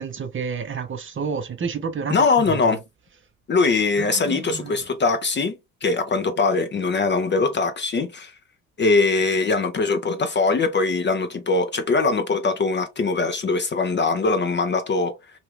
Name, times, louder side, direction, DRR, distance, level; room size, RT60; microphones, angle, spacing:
voice 1, 0.0-2.8 4.0-4.9, right 6 dB, 30° right, 0.7 m, -30 dB
voice 2, 2.1-2.8 3.5-8.3 8.8-15.1, left 3 dB, 25° left, 0.5 m, -22 dB
2.7 x 2.4 x 3.2 m
hypercardioid pair, 50°, 41 cm